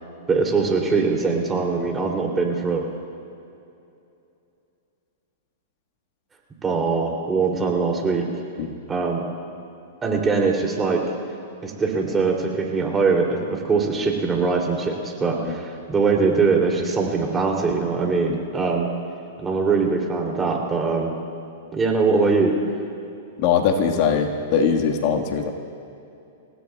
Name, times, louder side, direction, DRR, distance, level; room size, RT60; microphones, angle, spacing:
voice 1, 0.3-2.9 6.6-8.3 8.9-9.2 10.0-11.0 11.6-18.9 19.4-21.1 21.7-22.5, right 4 dB, 15° right, 0 dB, 2.8 m, -22 dB
voice 2, 23.4-25.5, left 6 dB, 50° left, 3 dB, 1.6 m, -21 dB
28.5 x 16.5 x 2.3 m, 2.6 s
hypercardioid pair, 125°, 0 cm